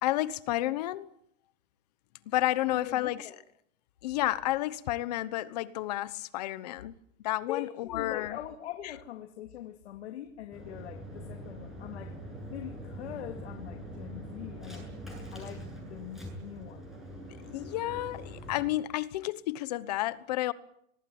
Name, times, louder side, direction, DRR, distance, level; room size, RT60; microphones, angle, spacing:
voice 1, 0.0-1.1 2.3-3.3 4.0-6.9 7.2-8.4 17.5-20.5, left 15 dB, 30° left, 1.0 m, -31 dB
voice 2, 2.7-3.4 7.5-12.2 12.5-14.9 15.3-16.8 18.5-18.6, left 11 dB, 55° left, 2.5 m, -42 dB
sound 1, 10.5-18.7, equal, ahead, 7.9 m, -43 dB
24.0 x 20.5 x 9.4 m
supercardioid pair, 175°, 40 cm